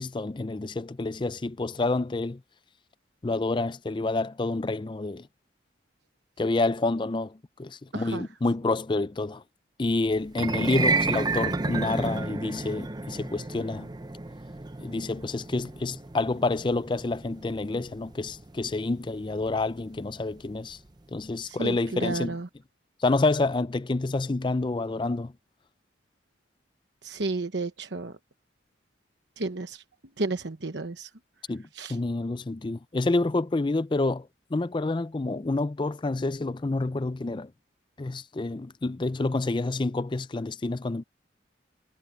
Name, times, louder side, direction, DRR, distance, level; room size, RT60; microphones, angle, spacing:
voice 1, 0.0-2.4 3.2-5.3 6.4-9.4 9.8-13.9 14.8-20.8 21.1-22.4 23.0-25.3 31.5-37.5 38.0-41.0, left 2 dB, 25° left, 0.4 m, -28 dB
voice 2, 7.9-8.3 21.4-22.5 27.0-28.2 29.4-29.8 30.2-31.1 31.7-32.0, right 3 dB, 65° right, 1.1 m, -32 dB
sound 1, 10.3-20.6, right 3 dB, 20° right, 0.6 m, -32 dB
head